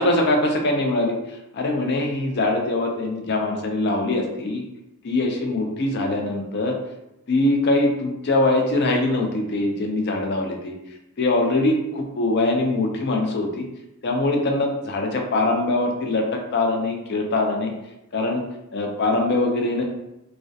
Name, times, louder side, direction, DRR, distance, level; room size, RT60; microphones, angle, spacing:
voice 1, 0.0-4.6 5.0-6.8 7.3-10.8 11.2-13.7 14.0-17.7 18.1-18.4 18.7-19.8, left 2 dB, 50° left, 2 dB, 0.4 m, -22 dB
2.3 x 2.0 x 2.6 m, 0.91 s
head